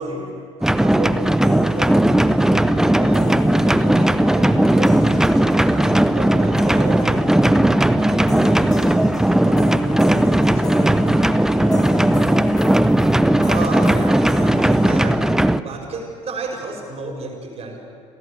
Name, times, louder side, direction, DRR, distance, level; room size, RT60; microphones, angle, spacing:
voice 1, 0.0-0.4 6.8-7.0 11.5-13.3, right 1 dB, 90° right, -4 dB, 2.9 m, -40 dB
sound 1, 0.6-15.6, right 1 dB, 5° right, 0.7 m, -17 dB
voice 2, 0.6-9.1 9.5-11.0 13.4-17.8, right 3 dB, 40° right, 2 dB, 5.3 m, -33 dB
sound 2, 1.4-15.1, left 3 dB, 25° left, 2.6 m, -35 dB
27.5 x 17.0 x 8.3 m, 2.3 s
figure-of-eight pair, 60°, 16 cm